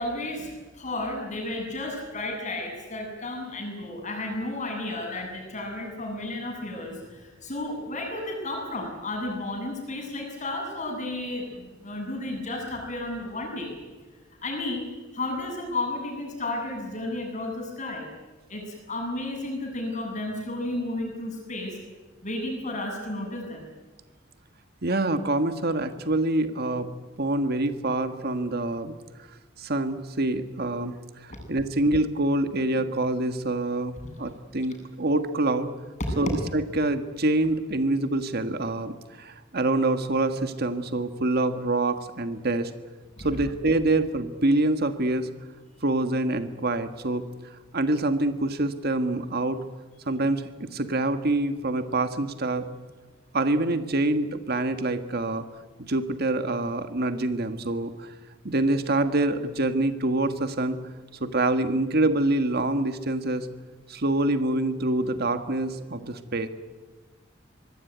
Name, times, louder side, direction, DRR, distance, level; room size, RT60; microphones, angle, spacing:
voice 1, 0.0-13.7 14.4-14.9 15.1-18.1 18.5-21.8 22.2-23.7 43.2-43.3, left 2 dB, 40° left, 3 dB, 7.7 m, -33 dB
voice 2, 24.8-26.9 27.2-28.9 29.6-30.9 31.2-35.7 36.2-42.7 43.2-45.3 45.8-47.2 47.7-49.6 50.1-52.7 53.3-55.5 55.8-58.1 58.4-60.8 61.2-63.5 63.9-66.5, right 2 dB, 55° right, 9 dB, 1.5 m, -26 dB
25.0 x 20.0 x 9.4 m, 1.3 s
head